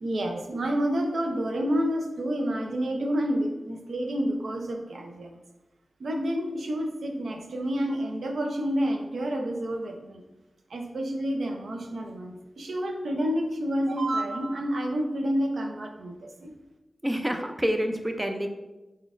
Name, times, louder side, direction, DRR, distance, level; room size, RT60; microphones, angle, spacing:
voice 1, 0.0-5.4 6.0-10.2 10.7-16.5, equal, 80° right, 3 dB, 0.5 m, -29 dB
voice 2, 17.0-18.5, equal, 15° right, 5 dB, 0.4 m, -27 dB
4.0 x 3.8 x 2.5 m, 1.0 s
wide cardioid pair, 105°, 0 cm